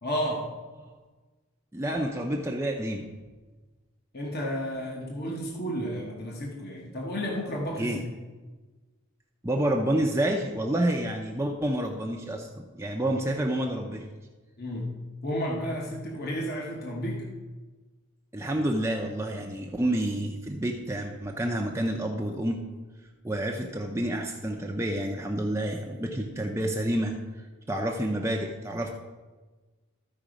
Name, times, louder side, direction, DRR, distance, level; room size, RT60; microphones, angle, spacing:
voice 1, 0.0-0.5 4.1-8.0 14.6-15.0 15.2-17.3, equal, 45° left, -1 dB, 1.1 m, -32 dB
voice 2, 1.7-3.1 7.8-8.0 9.4-14.0 18.3-22.6 23.2-28.9, right 1 dB, 10° right, 1 dB, 0.5 m, -29 dB
13.5 x 4.9 x 5.0 m, 1.3 s
head